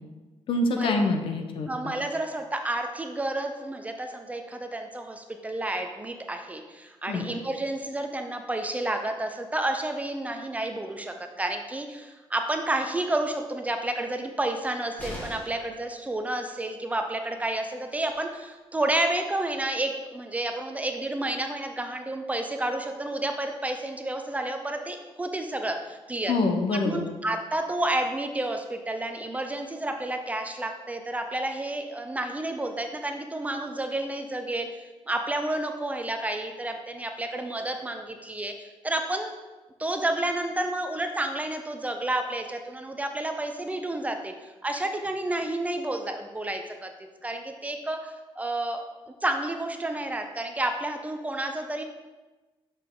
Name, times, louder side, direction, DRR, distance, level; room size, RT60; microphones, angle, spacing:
voice 1, 0.5-1.9 7.1-7.2 26.3-27.1, left 2 dB, 60° left, 5 dB, 0.8 m, -26 dB
voice 2, 1.7-26.3 26.8-39.3 39.8-44.3 44.6-46.9 47.2-48.8 49.2-51.8, right 1 dB, 15° right, 5 dB, 0.5 m, -30 dB
sound 1, 15.0-15.7 17.7-17.8 18.1-18.2, left 1 dB, 15° left, 1.5 m, -39 dB
6.5 x 5.7 x 3.8 m, 1.2 s
cardioid pair, 150°, 10 cm